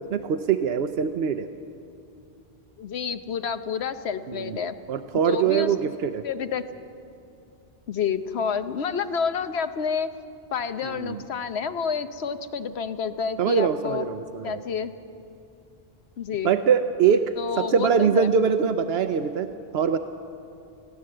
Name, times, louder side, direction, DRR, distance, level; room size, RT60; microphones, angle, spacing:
voice 1, 0.1-1.5 4.3-4.6 4.9-6.2 10.9-11.2 13.4-14.6 16.4-19.5 19.7-20.0, right 7 dB, 80° right, 9 dB, 0.9 m, -23 dB
voice 2, 2.8-4.7 5.2-5.9 6.2-6.6 7.9-10.1 10.5-14.1 14.4-14.9 16.2-16.6 17.4-18.3, left 6 dB, 85° left, 10 dB, 1.1 m, -29 dB
21.0 x 16.0 x 7.7 m, 2.7 s
omnidirectional pair, 1.1 m